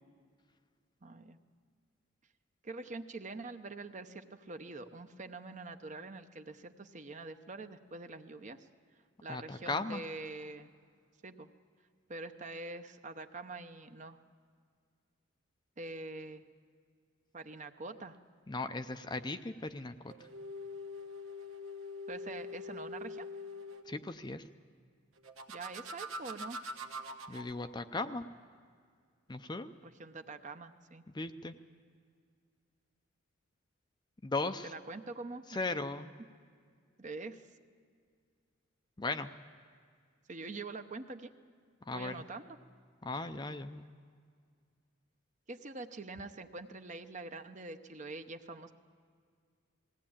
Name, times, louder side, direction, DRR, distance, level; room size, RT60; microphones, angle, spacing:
voice 1, 1.0-1.4 2.6-8.7 9.2-10.7 11.2-11.5 12.1-14.2 15.8-16.4 17.3-18.2 22.1-23.3 25.5-26.6 29.8-31.0 34.6-35.7 37.0-37.4 40.3-41.3 41.9-42.6 45.5-48.7, right 3 dB, 35° right, 8 dB, 0.8 m, -45 dB
voice 2, 9.3-10.0 18.5-20.1 23.9-24.4 27.3-28.3 29.3-29.7 31.1-31.5 34.2-34.7 35.5-36.1 39.0-39.3 41.9-42.2 43.0-43.9, left 3 dB, 20° left, 9 dB, 0.5 m, -37 dB
sound 1, 20.1-23.9 25.2-27.5, left 1 dB, 90° right, 1.4 m, -44 dB
20.0 x 17.0 x 8.7 m, 2.1 s
head